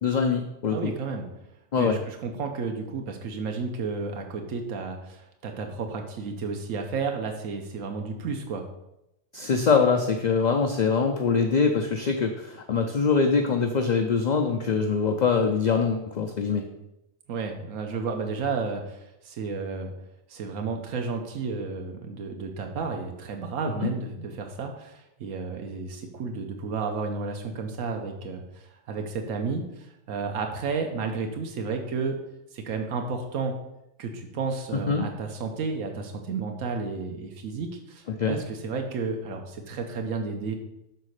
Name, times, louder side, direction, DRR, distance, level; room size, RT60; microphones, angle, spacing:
voice 1, 0.0-0.9 1.7-2.0 9.3-16.7 23.8-23.9 34.9-35.1 38.2-38.4, left 5 dB, 50° left, 4 dB, 0.5 m, -23 dB
voice 2, 0.7-1.3 1.8-8.6 17.3-19.9 20.3-32.2 32.5-33.5 34.0-40.5, right 4 dB, 80° right, 3 dB, 1.2 m, -32 dB
6.8 x 4.1 x 6.4 m, 0.87 s
omnidirectional pair, 1.4 m